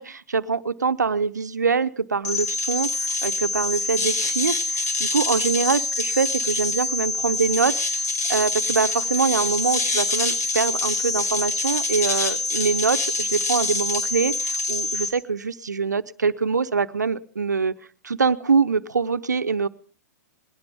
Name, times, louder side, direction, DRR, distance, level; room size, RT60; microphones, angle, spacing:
voice 1, 0.0-2.9 3.2-7.8 8.3-17.7 18.0-19.7, right 5 dB, 85° right, 12 dB, 0.9 m, -24 dB
sound 1, 2.2-15.1, left 3 dB, 70° left, 5.0 m, -25 dB
20.5 x 16.5 x 3.5 m, 0.39 s
hypercardioid pair, 115°, 9 cm